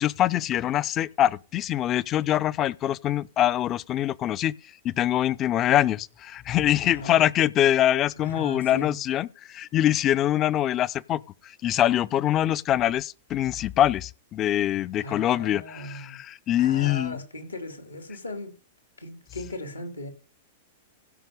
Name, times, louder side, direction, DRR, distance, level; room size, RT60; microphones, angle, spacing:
voice 1, 0.0-4.6 4.8-17.2, left 12 dB, 30° left, 0.5 m, -24 dB
voice 2, 6.8-7.2 8.2-9.0 15.0-16.2 16.5-18.5 19.0-20.1, left 1 dB, 90° left, 2.8 m, -38 dB
16.0 x 5.9 x 5.0 m
figure-of-eight pair, 100°, 0 cm